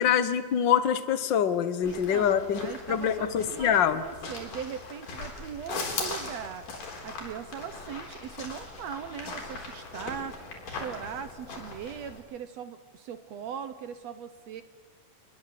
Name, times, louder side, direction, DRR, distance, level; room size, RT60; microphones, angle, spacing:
voice 1, 0.0-4.0, left 8 dB, 55° left, 11 dB, 1.3 m, -25 dB
sound 1, 1.8-12.2, left 3 dB, 75° left, 5.4 m, -40 dB
voice 2, 1.8-6.6 7.0-10.4 10.7-14.6, right 8 dB, 65° right, 11 dB, 1.9 m, -40 dB
27.5 x 21.0 x 7.7 m, 1.4 s
omnidirectional pair, 3.7 m